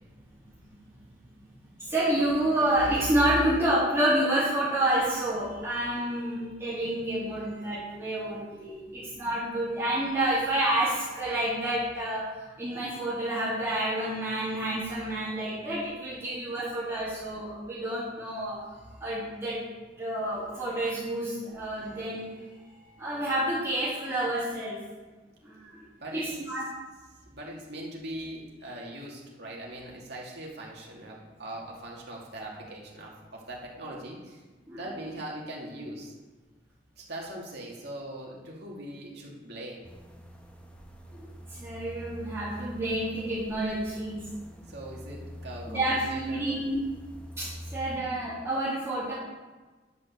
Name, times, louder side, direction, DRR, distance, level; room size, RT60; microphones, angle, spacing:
voice 1, 1.7-18.6 19.0-19.6 20.0-24.8 25.4-25.8 26.1-26.7 34.7-34.8 41.1-44.3 45.7-46.8 47.4-49.1, right 1 dB, 15° right, -12 dB, 2.9 m, -29 dB
voice 2, 27.2-34.4 34.7-36.1 37.0-39.9 44.7-46.5, right 1 dB, 60° right, -3 dB, 2.6 m, -41 dB
sound 1, 39.8-48.0, equal, 5° left, 1.1 m, -45 dB
11.0 x 5.9 x 6.8 m, 1.3 s
head